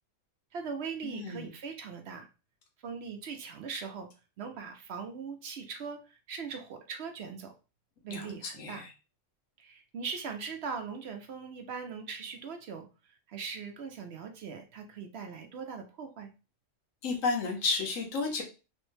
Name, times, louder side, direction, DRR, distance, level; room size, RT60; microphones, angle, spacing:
voice 1, 0.5-2.3 2.8-4.1 4.4-7.5 8.0-8.8 9.6-16.3, right 5 dB, 65° right, 5 dB, 0.8 m, -40 dB
voice 2, 1.0-1.5 8.1-8.9 17.0-18.4, left 4 dB, 85° left, 2 dB, 1.3 m, -32 dB
3.3 x 2.1 x 3.1 m, 0.31 s
omnidirectional pair, 1.3 m